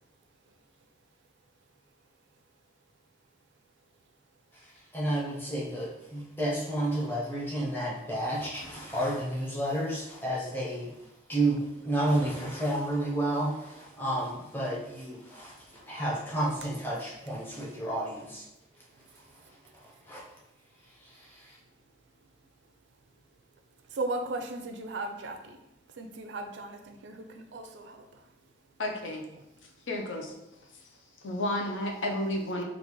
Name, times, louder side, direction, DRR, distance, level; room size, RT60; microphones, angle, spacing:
voice 1, 4.9-11.0 11.3-18.4 20.1-20.3 21.2-21.6, right 1 dB, 10° left, -5 dB, 0.7 m, -31 dB
voice 2, 23.9-25.6 25.9-28.2, right 2 dB, 75° right, 5 dB, 0.4 m, -36 dB
voice 3, 28.8-29.4 29.9-30.3 31.2-32.6, left 1 dB, 85° left, 2 dB, 0.6 m, -32 dB
3.9 x 2.4 x 3.0 m, 0.89 s
head